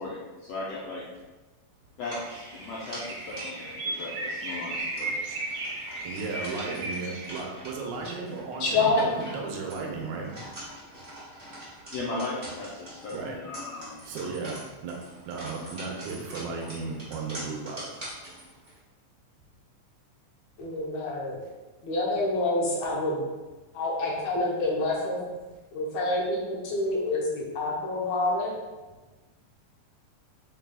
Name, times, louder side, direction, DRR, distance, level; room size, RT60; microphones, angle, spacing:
voice 1, 0.0-1.0 2.0-5.2 11.9-14.3, left 2 dB, 90° left, -6 dB, 1.4 m, -37 dB
sound 1, 2.0-18.8, right 1 dB, 45° right, 0.5 m, -44 dB
sound 2, 2.2-7.4, right 2 dB, 65° right, 1.9 m, -35 dB
voice 2, 6.0-10.3 13.1-13.4 13.7-17.9, right 4 dB, 80° right, 0 dB, 2.0 m, -35 dB
voice 3, 8.6-9.0 20.6-21.4 21.8-23.2 23.7-25.2 25.7-28.5, left 2 dB, 75° left, -4 dB, 2.0 m, -27 dB
4.9 x 4.0 x 2.3 m, 1.2 s
omnidirectional pair, 3.6 m